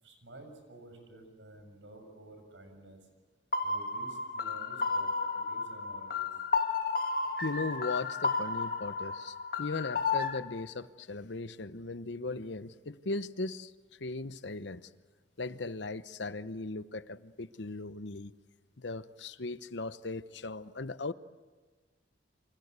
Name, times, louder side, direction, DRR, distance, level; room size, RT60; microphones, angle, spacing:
voice 1, 0.0-3.0 3.6-6.3, right 1 dB, 80° right, 6 dB, 7.0 m, -52 dB
sound 1, 3.5-10.4, left 4 dB, 50° left, 1.9 m, -32 dB
voice 2, 7.4-13.7 14.0-14.9 15.4-18.3 18.8-21.1, left 3 dB, 75° left, 13 dB, 0.9 m, -38 dB
28.5 x 25.5 x 8.2 m, 1.4 s
head